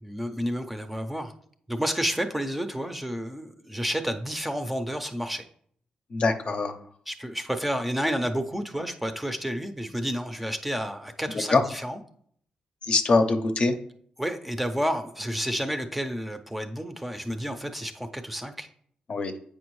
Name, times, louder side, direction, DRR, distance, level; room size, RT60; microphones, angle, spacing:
voice 1, 0.0-1.3 1.7-5.4 7.1-12.0 14.2-18.7, equal, 5° right, 6 dB, 0.6 m, -30 dB
voice 2, 6.1-6.8 11.3-11.6 12.8-13.7 19.1-19.3, left 3 dB, 50° left, 6 dB, 0.7 m, -23 dB
8.0 x 5.1 x 3.1 m, 0.63 s
cardioid pair, 80°, 2 cm